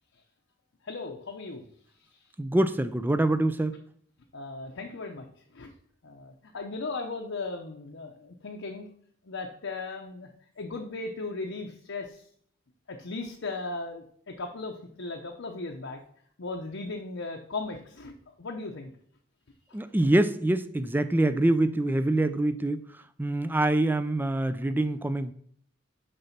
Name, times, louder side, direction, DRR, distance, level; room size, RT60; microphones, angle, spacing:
voice 1, 0.8-1.6 4.3-5.2 5.5-5.7 6.0-8.9 9.2-10.3 10.6-12.2 12.9-16.0 16.4-18.9, left 3 dB, 65° left, 1 dB, 0.8 m, -37 dB
voice 2, 2.4-3.7 19.7-22.8 23.2-25.3, right 1 dB, 10° right, 12 dB, 0.4 m, -25 dB
6.8 x 5.3 x 5.8 m, 0.63 s
head